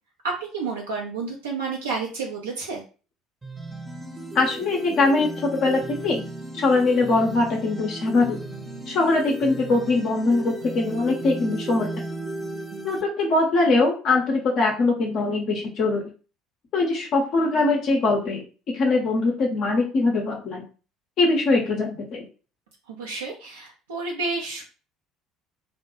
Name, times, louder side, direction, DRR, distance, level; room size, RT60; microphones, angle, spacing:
voice 1, 0.2-2.8 22.9-24.6, right 4 dB, 75° right, -1 dB, 0.4 m, -30 dB
sound 1, 3.4-13.0, right 2 dB, 15° right, 0.5 m, -35 dB
voice 2, 4.3-6.2 6.5-8.4 8.9-11.9 12.8-16.1 16.7-18.4 18.7-20.6 21.2-22.3, left 3 dB, 50° left, 0 dB, 0.5 m, -22 dB
2.2 x 2.0 x 2.9 m, 0.36 s
figure-of-eight pair, 60°, 0 cm